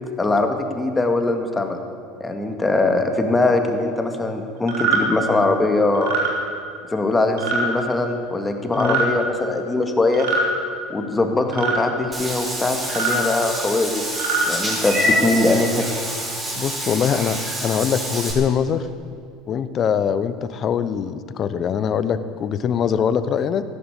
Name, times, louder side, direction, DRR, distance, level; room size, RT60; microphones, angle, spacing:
voice 1, 0.2-1.8 2.2-6.1 6.9-10.3 10.9-14.1 14.5-15.9, left 2 dB, 15° left, 5 dB, 2.1 m, -21 dB
sound 1, 4.7-5.0 5.9-6.3 7.4-7.7 8.7-9.1 10.1-10.5 11.5-11.8 12.8-13.2 14.0-14.5, right 4 dB, 80° right, 3.3 m, -22 dB
voice 2, 8.7-9.1 16.5-18.9 19.5-23.6, left 7 dB, 45° left, 13 dB, 1.0 m, -23 dB
Meow / Water / Bathtub (filling or washing), 12.1-18.3, equal, 20° right, 5.1 m, -26 dB
15.0 x 11.5 x 8.2 m, 2.5 s
hypercardioid pair, 90°, 0 cm